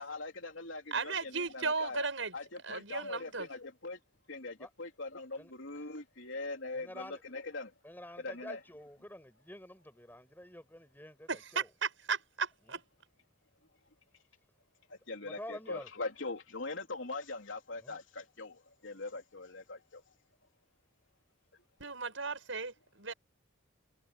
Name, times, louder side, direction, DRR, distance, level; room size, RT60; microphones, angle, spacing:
voice 1, 0.0-2.1 2.3-4.0 4.3-7.7 8.2-8.6 14.9-20.0, left 3 dB, 80° left, 3.2 m, -42 dB
voice 2, 0.9-2.3 2.6-3.5 11.3-12.8 21.8-23.1, right 4 dB, 80° right, 6.1 m, -36 dB
voice 3, 5.4-5.8 6.7-7.2 7.8-11.7 12.7-12.8 15.2-15.9 17.8-18.0, left 1 dB, 10° left, 6.3 m, -48 dB
head